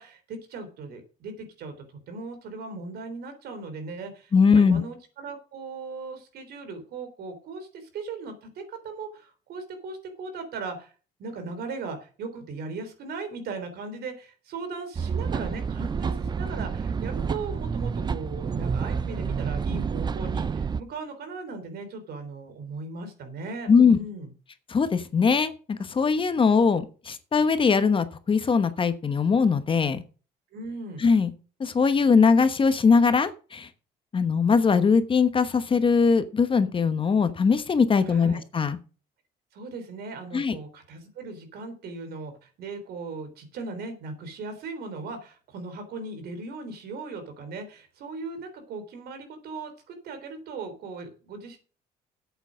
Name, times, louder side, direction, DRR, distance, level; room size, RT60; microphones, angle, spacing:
voice 1, 0.0-1.7 2.1-10.9 11.2-24.3 30.5-31.0 38.1-38.4 39.5-51.6, right 3 dB, 70° right, 7 dB, 3.6 m, -38 dB
voice 2, 4.3-4.8 23.7-24.0 24.7-30.0 31.0-31.3 31.6-33.7 34.1-38.8 40.3-40.6, left 5 dB, 30° left, 11 dB, 1.1 m, -21 dB
sound 1, 14.9-20.8, right 6 dB, 25° right, 0.5 m, -29 dB
8.3 x 8.0 x 6.3 m, 0.36 s
cardioid pair, 110°, 17 cm